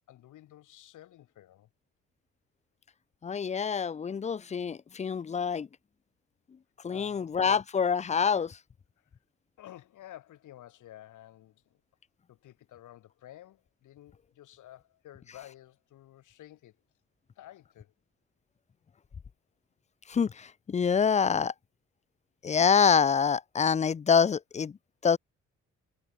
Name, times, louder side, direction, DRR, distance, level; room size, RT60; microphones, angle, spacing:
voice 1, 0.1-1.7 6.9-7.3 9.0-9.1 9.6-11.8 12.3-16.8 17.4-17.9, left 13 dB, 80° left, 5.8 m, -51 dB
voice 2, 3.2-5.7 6.8-8.6 20.1-21.5 22.4-24.7 25.0-25.2, left 6 dB, 25° left, 0.5 m, -26 dB
cardioid pair, 90°, 30 cm